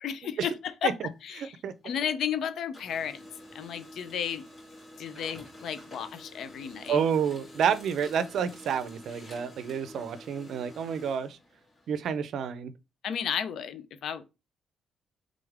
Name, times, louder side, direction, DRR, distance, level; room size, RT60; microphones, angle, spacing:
voice 1, 0.0-0.9 1.2-3.2 3.5-4.5 5.0-7.0 13.0-14.2, left 8 dB, 70° left, 0.6 m, -33 dB
Printer, 1.1-2.3 2.6-12.2, left 1 dB, 40° left, 2.3 m, -49 dB
voice 2, 1.4-1.7 6.9-11.4 11.9-12.7, right 7 dB, 70° right, 0.5 m, -29 dB
3.7 x 3.5 x 3.4 m
cardioid pair, 90°, 0 cm